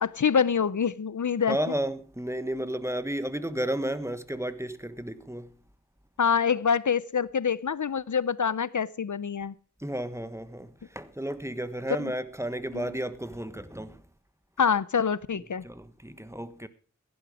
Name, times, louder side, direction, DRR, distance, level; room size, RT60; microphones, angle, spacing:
voice 1, 0.0-1.6 6.2-9.5 12.0-12.1 12.7-12.8 14.6-15.6, left 6 dB, 75° left, 0.6 m, -26 dB
voice 2, 1.5-5.6 9.8-14.0 15.3-16.7, right 1 dB, 10° right, 1.3 m, -33 dB
16.0 x 11.0 x 4.8 m
wide cardioid pair, 45°, 30 cm